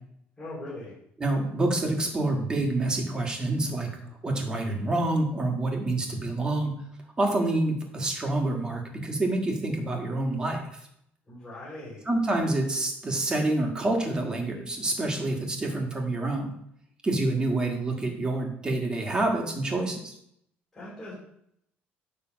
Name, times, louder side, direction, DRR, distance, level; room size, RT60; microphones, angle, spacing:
voice 1, 0.4-0.9 11.3-12.0 20.7-21.1, left 1 dB, 15° left, -8 dB, 3.2 m, -40 dB
voice 2, 1.2-6.8 7.2-10.6 12.0-16.5 17.0-20.1, right 2 dB, 20° right, 2 dB, 1.6 m, -27 dB
9.5 x 3.4 x 6.2 m, 0.72 s
cardioid pair, 145°, 4 cm